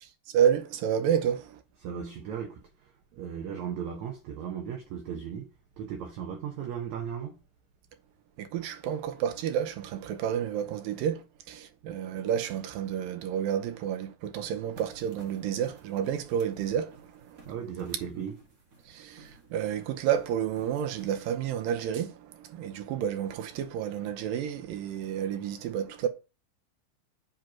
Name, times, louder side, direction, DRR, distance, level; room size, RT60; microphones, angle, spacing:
voice 1, 0.0-1.6 8.4-17.5 18.9-26.1, right 9 dB, 80° right, 2.5 m, -30 dB
voice 2, 1.8-5.5 5.8-7.4 17.5-18.3, right 8 dB, 65° right, 2.1 m, -37 dB
sound 1, 14.7-21.5, right 3 dB, 40° right, 1.2 m, -54 dB
7.6 x 4.5 x 6.1 m
omnidirectional pair, 4.1 m